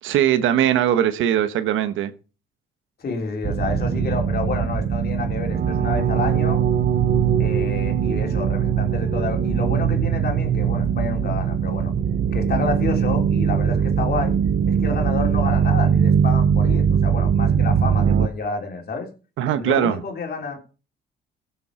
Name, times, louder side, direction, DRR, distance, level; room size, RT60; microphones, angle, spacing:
voice 1, 0.0-2.1 19.4-20.0, right 10 dB, 85° right, 1.2 m, -20 dB
voice 2, 3.0-6.6 7.4-11.9 12.3-14.4 14.6-19.1 19.6-20.6, left 4 dB, 50° left, 3.5 m, -29 dB
sound 1, 3.4-18.3, right 7 dB, 50° right, 0.9 m, -21 dB
15.5 x 7.1 x 5.0 m
cardioid pair, 90°, 20 cm